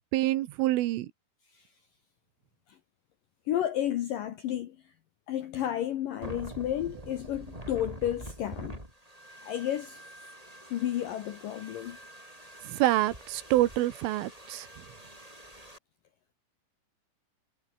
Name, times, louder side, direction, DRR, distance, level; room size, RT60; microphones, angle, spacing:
voice 1, 0.1-1.1 12.7-14.7, right 16 dB, 90° right, 3.8 m, -26 dB
voice 2, 3.5-4.8 5.3-8.8 9.4-10.0 10.7-12.0, left 11 dB, 75° left, 2.0 m, -32 dB
sound 1, 6.2-15.8, right 1 dB, 5° right, 7.4 m, -46 dB
omnidirectional pair, 5.6 m